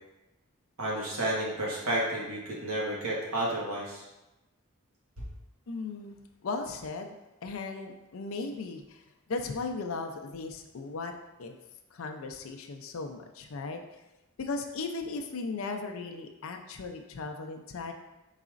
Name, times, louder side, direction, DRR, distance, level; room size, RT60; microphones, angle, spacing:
voice 1, 0.8-4.0 5.2-5.3, right 1 dB, 85° right, -5 dB, 1.4 m, -31 dB
voice 2, 5.7-6.2 6.4-7.1 7.4-9.0 9.3-11.1 11.4-11.6 11.9-13.8 14.4-17.9, left 3 dB, 65° left, 5 dB, 0.5 m, -37 dB
4.8 x 4.0 x 2.5 m, 1.0 s
head